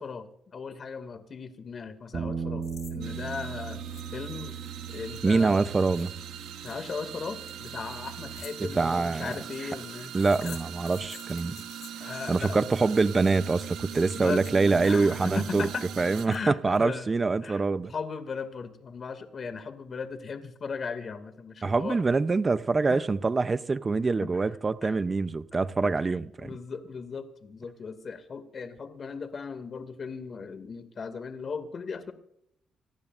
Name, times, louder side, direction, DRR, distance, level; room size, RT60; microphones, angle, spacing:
voice 1, 0.0-3.8 4.1-4.6 4.9-5.6 6.6-10.1 10.4-10.6 12.0-12.6 14.1-14.5 14.8-15.9 16.2-17.1 17.4-17.6 17.9-22.0 22.8-23.1 24.2-24.3 24.8-25.0 25.5-32.1, left 5 dB, 45° left, 2.3 m, -37 dB
sound 1, 2.1-8.4, right 6 dB, 45° right, 1.8 m, -38 dB
sound 2, 2.6-2.9 3.2-3.3 3.9-4.2 4.5-16.8, left 9 dB, 70° left, 3.3 m, -52 dB
sound 3, 3.0-16.3, right 10 dB, 85° right, 1.7 m, -41 dB
voice 2, 5.2-6.1 8.7-9.3 10.1-11.6 12.3-15.7 16.0-17.9 21.6-26.5, right 4 dB, 30° right, 0.7 m, -25 dB
27.0 x 18.0 x 2.6 m
cardioid pair, 90°, 0 cm